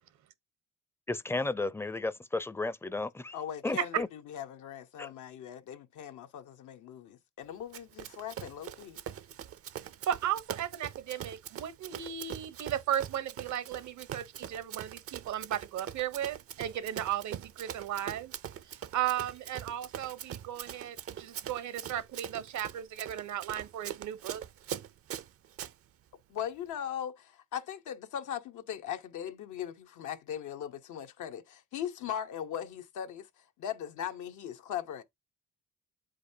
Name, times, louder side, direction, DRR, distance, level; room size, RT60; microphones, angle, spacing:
voice 1, 1.1-3.3 3.6-4.1 5.0-5.1, left 2 dB, 10° left, 0.5 m, -33 dB
voice 2, 3.3-9.0 26.3-33.3 33.6-35.0, left 9 dB, 80° left, 1.0 m, -39 dB
Run, 7.7-25.7, right 10 dB, 50° right, 0.5 m, -43 dB
voice 3, 10.1-18.3 18.7-24.4, right 11 dB, 70° right, 0.9 m, -35 dB
7.9 x 5.1 x 2.7 m
cardioid pair, 90°, 30 cm